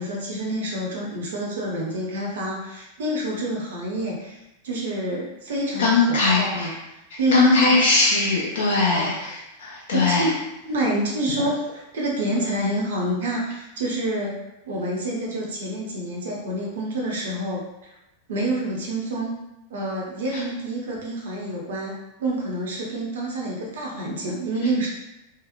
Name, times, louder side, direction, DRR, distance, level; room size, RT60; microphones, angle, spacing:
voice 1, 0.0-6.7 7.2-7.8 8.4-9.3 9.9-10.3 10.6-14.4 14.7-17.9 18.3-19.3 19.7-24.9, right 1 dB, 60° right, -2 dB, 0.6 m, -28 dB
voice 2, 5.8-6.7 7.1-10.3 20.3-20.4, left 3 dB, 60° left, -4 dB, 0.5 m, -20 dB
2.7 x 2.0 x 2.5 m, 0.94 s
figure-of-eight pair, 90°, 0 cm